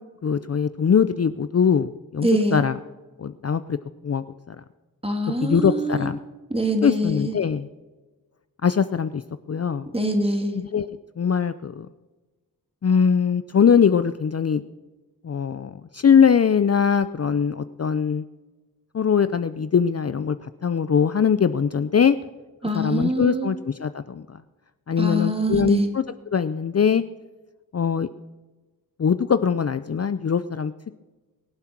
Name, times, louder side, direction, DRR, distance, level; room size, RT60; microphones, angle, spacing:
voice 1, 0.2-2.8 3.2-3.8 4.0-4.6 5.4-6.2 6.8-7.7 8.6-9.2 9.5-9.9 10.5-10.9 11.2-11.9 12.8-14.6 15.2-18.2 18.9-22.2 22.7-24.4 24.9-27.0 27.7-28.1 29.0-30.7, left 7 dB, 45° left, 13 dB, 0.5 m, -21 dB
voice 2, 2.2-2.6 5.0-6.1 6.5-7.3 9.9-10.5 22.6-23.5 25.0-25.9, equal, 15° right, 4 dB, 2.5 m, -24 dB
22.5 x 7.7 x 5.9 m, 1.2 s
wide cardioid pair, 55°, 37 cm